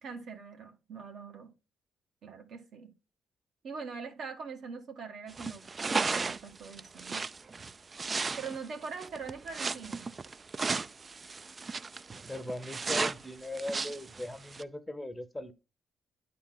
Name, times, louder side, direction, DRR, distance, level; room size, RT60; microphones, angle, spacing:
voice 1, 0.0-1.5 2.2-2.9 3.6-7.2 8.4-10.1, right 5 dB, 65° right, 1.6 m, -43 dB
sound 1, 5.3-14.6, right 4 dB, 30° right, 0.3 m, -35 dB
voice 2, 12.1-15.5, left 1 dB, 10° left, 0.7 m, -39 dB
9.6 x 4.3 x 3.8 m
cardioid pair, 90°, 0 cm